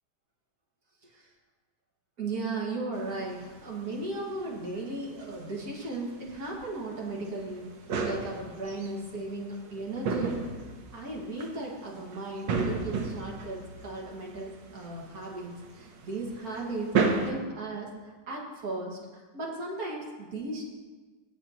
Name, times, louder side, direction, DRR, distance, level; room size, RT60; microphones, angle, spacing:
voice 1, 2.2-7.7 8.0-10.4 10.9-16.9 17.2-20.6, right 2 dB, 55° right, -2 dB, 2.1 m, -36 dB
sound 1, 3.0-17.3, right 4 dB, 85° right, 1.6 m, -35 dB
16.5 x 7.4 x 2.9 m, 1.3 s
omnidirectional pair, 1.9 m